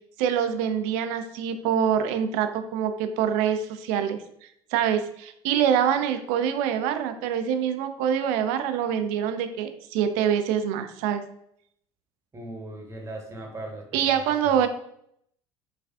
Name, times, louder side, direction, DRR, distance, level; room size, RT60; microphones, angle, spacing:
voice 1, 0.2-4.2 4.7-11.2 13.9-14.7, right 8 dB, 55° right, 8 dB, 0.4 m, -25 dB
voice 2, 12.3-14.1, right 1 dB, 20° right, 1 dB, 1.0 m, -38 dB
4.7 x 2.4 x 2.3 m, 0.70 s
figure-of-eight pair, 60°, 15 cm